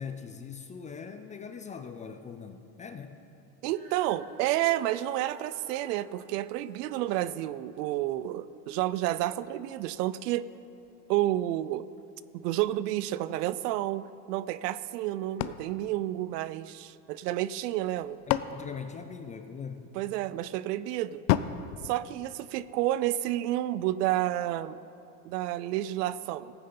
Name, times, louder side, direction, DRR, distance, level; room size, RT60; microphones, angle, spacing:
voice 1, 0.0-3.2 18.3-19.9, left 6 dB, 15° left, 7 dB, 0.3 m, -41 dB
voice 2, 3.6-10.4 11.1-11.8 12.4-18.2 19.9-21.2 21.8-24.8 25.2-26.5, right 14 dB, 80° right, 16 dB, 0.6 m, -30 dB
Female singing, 3.7-10.0 10.7-10.8, right 2 dB, 25° right, 2.9 m, -52 dB
sound 1, 15.4-16.9 17.8-19.8 21.3-22.9, left 13 dB, 90° left, 0.6 m, -33 dB
18.0 x 9.7 x 3.9 m, 2.7 s
supercardioid pair, 120°, 47 cm